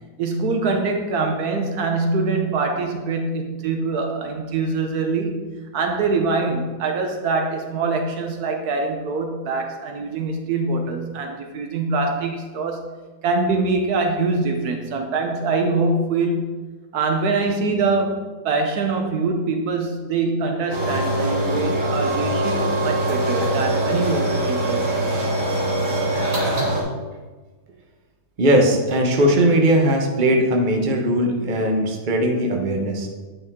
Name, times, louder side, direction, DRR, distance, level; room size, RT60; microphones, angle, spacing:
voice 1, 0.2-5.4 5.7-12.9 13.2-16.6 16.9-25.1, right 3 dB, 70° right, 4 dB, 1.2 m, -24 dB
sound 1, 20.7-26.8, right 1 dB, 55° right, 2.1 m, -22 dB
voice 2, 28.4-33.1, right 1 dB, 35° right, 2 dB, 1.0 m, -19 dB
8.8 x 5.5 x 3.6 m, 1.3 s
omnidirectional pair, 1.7 m